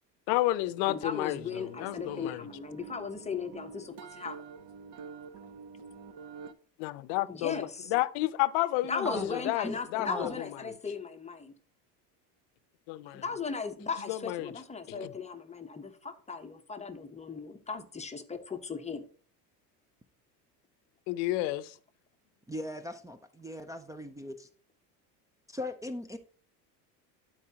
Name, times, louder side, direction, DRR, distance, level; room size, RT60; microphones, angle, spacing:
voice 1, 0.3-2.4 6.8-10.7 12.9-13.2 14.1-14.5 14.9-15.1 21.1-21.7, left 17 dB, 65° left, 0.7 m, -31 dB
voice 2, 0.8-4.4 7.3-7.9 8.9-11.5 13.1-19.0, left 5 dB, 15° left, 0.9 m, -37 dB
sound 1, 1.5-6.5, right 5 dB, 45° right, 0.8 m, -47 dB
voice 3, 9.0-9.8 10.0-10.3 22.5-24.5 25.5-26.2, left 1 dB, 5° right, 0.5 m, -39 dB
12.0 x 4.8 x 2.8 m
hypercardioid pair, 90°, 49 cm